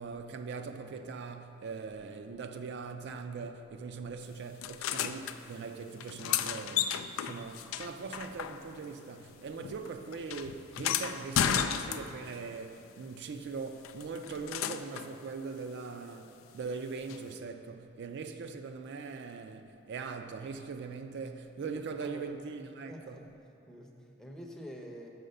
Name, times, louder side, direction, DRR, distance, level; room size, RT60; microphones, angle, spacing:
voice 1, 0.0-23.2, right 4 dB, 60° right, 0.4 m, -41 dB
sound 1, 4.6-5.4 6.0-8.9 9.2-12.4 13.8-15.1 17.1-17.2, left 9 dB, 80° left, 0.3 m, -34 dB
voice 2, 21.7-22.3 22.9-23.2 23.7-25.1, equal, 5° left, 0.6 m, -47 dB
6.5 x 4.8 x 6.5 m
head